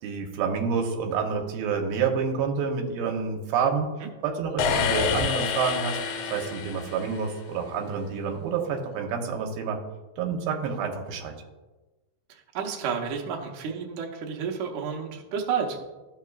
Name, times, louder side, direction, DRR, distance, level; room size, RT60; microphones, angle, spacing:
voice 1, 0.0-3.9 4.2-6.0 6.3-9.8 10.2-11.3, right 6 dB, 85° right, 2 dB, 2.7 m, -28 dB
sound 1, 4.6-7.4, left 7 dB, 70° left, 1.9 m, -28 dB
voice 2, 12.3-15.8, right 6 dB, 70° right, -1 dB, 2.1 m, -31 dB
13.5 x 5.6 x 2.4 m, 1.2 s
omnidirectional pair, 4.2 m